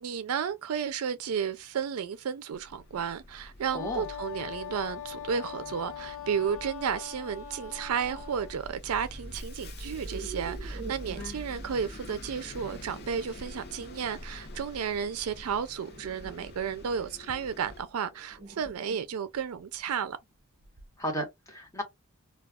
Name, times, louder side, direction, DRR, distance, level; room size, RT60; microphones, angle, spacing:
voice 1, 0.0-20.2, right 7 dB, 85° right, 0.4 m, -33 dB
Bus, 2.5-17.8, equal, 50° left, 0.7 m, -45 dB
sound 1, 3.0-3.1 3.6-3.8 4.4-4.5 5.4-6.1 7.4-7.5 7.9-8.3 9.7-21.0, right 3 dB, 45° right, 0.6 m, -48 dB
Wind instrument woodwind instrument, 3.7-8.6, left 9 dB, 85° left, 0.7 m, -41 dB
voice 2, 3.7-4.1 11.2-11.4 21.0-21.8, equal, 15° left, 1.1 m, -34 dB
2.3 x 2.3 x 3.4 m
head